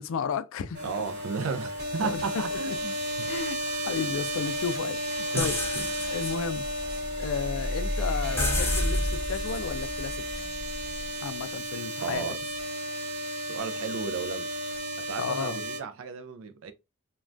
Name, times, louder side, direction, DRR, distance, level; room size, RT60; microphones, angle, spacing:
voice 1, 0.0-0.8 2.0-2.8 3.3-5.6 6.1-6.7 7.2-10.2 11.2-12.2 15.2-15.6, left 6 dB, 65° left, 0.3 m, -33 dB
sound 1, 0.7-15.8, equal, 45° right, 1.1 m, -33 dB
voice 2, 0.8-3.3 5.3-5.8 12.0-12.4 13.5-14.5 15.0-16.7, right 5 dB, 60° right, 0.3 m, -34 dB
sound 2, 5.4-11.2, left 1 dB, 10° left, 0.7 m, -31 dB
3.2 x 2.2 x 2.5 m
head